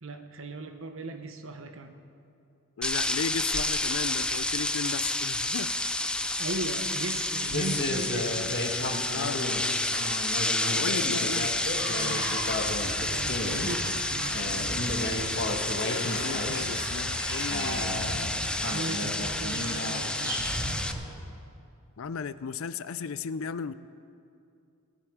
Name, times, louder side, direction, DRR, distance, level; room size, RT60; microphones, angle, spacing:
voice 1, 0.0-2.0 6.4-8.4 10.7-10.9 11.9-12.4 13.0-14.9 18.6-20.5, right 2 dB, 65° right, 7 dB, 1.0 m, -38 dB
voice 2, 2.8-5.7 9.1-9.8 10.7-11.5 15.9-18.4 19.0-19.1 22.0-23.7, left 6 dB, 65° left, 15 dB, 0.4 m, -35 dB
sound 1, 2.8-20.9, left 1 dB, 5° left, 0.4 m, -30 dB
sound 2, 6.1-20.2, left 2 dB, 50° left, 1.5 m, -34 dB
sound 3, 11.5-20.9, equal, 20° right, 4.4 m, -38 dB
18.0 x 11.5 x 5.0 m, 2.5 s
head